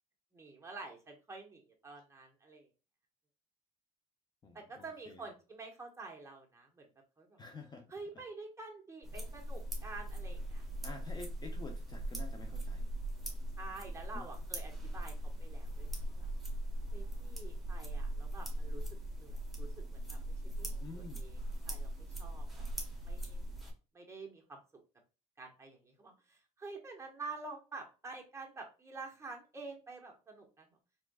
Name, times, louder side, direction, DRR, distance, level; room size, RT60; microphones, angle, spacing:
voice 1, 0.3-2.7 4.5-6.9 7.2-7.4 7.9-10.6 13.6-15.1 15.4-16.3 16.9-18.8 19.1-19.7 20.1-20.2 20.6-21.4 21.7-22.6 23.0-23.5 23.9-24.6 25.4-30.7, right 3 dB, 15° right, 0 dB, 1.4 m, -48 dB
voice 2, 4.4-5.2 7.4-7.8 10.8-12.9 14.1-14.2 20.8-21.2, left 3 dB, 25° left, 4 dB, 0.7 m, -49 dB
sound 1, 9.0-23.7, right 1 dB, ahead, 1.4 m, -40 dB
4.8 x 3.7 x 2.4 m, 0.32 s
cardioid pair, 110°, 17 cm